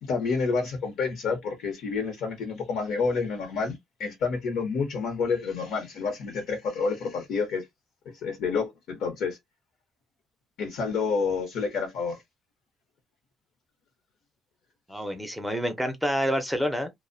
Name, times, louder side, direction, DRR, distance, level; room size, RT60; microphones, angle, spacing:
voice 1, 0.0-7.7 8.2-9.4 10.6-12.2, left 5 dB, 75° left, 0.7 m, -29 dB
voice 2, 14.9-16.9, equal, ahead, 0.5 m, -28 dB
2.5 x 2.0 x 2.5 m
cardioid pair, 150°, 0 cm